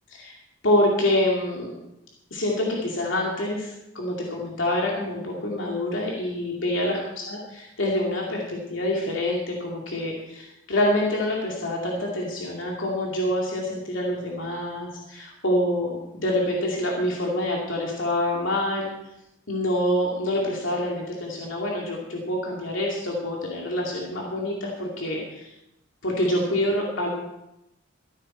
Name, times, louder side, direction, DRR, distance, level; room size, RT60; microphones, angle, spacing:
voice 1, 0.6-1.7 2.3-18.9 19.5-25.5 26.0-27.1, left 1 dB, 80° left, -2 dB, 2.4 m, -26 dB
14.0 x 12.0 x 4.4 m, 0.88 s
head